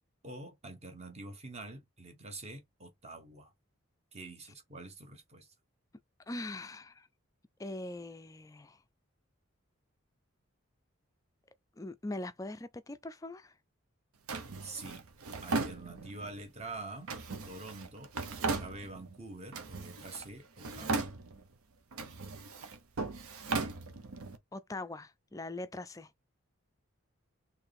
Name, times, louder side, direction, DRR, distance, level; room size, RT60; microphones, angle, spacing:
voice 1, 0.2-3.5 4.1-5.5 14.6-15.1 15.4-17.1 17.4-21.1, right 2 dB, 30° right, 1.0 m, -46 dB
voice 2, 6.3-7.1 7.6-8.8 11.8-13.5 24.5-26.1, left 2 dB, 15° left, 0.3 m, -41 dB
Drawer open or close, 14.3-16.4 17.1-19.2 19.5-20.3 20.6-21.5 21.9-24.4, right 3 dB, 85° right, 0.8 m, -37 dB
4.5 x 3.2 x 3.4 m
head